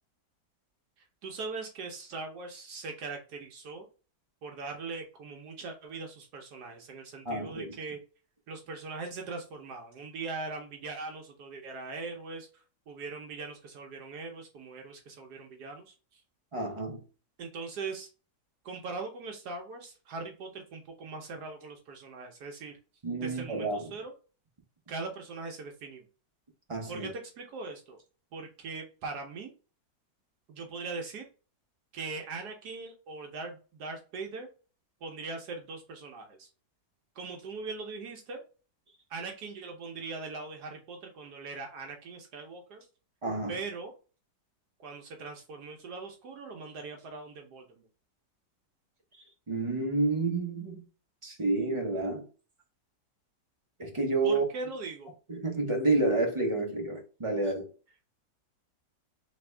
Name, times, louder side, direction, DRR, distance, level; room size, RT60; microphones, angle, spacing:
voice 1, 1.2-3.9 4.4-8.0 8.5-16.2 17.4-18.1 18.6-22.8 23.2-24.1 24.9-26.0 26.9-28.0 28.3-29.5 30.5-31.3 31.9-34.5 35.0-36.5 37.1-38.4 39.1-42.9 43.5-43.9 44.8-47.9 54.2-55.1, right 3 dB, 70° right, 1.2 m, -40 dB
voice 2, 7.2-7.7 16.5-17.0 23.0-23.9 26.7-27.1 43.2-43.5 49.5-50.8 51.2-52.2 53.8-54.4 55.3-57.7, right 3 dB, 35° right, 0.5 m, -29 dB
3.4 x 3.4 x 3.2 m
omnidirectional pair, 1.8 m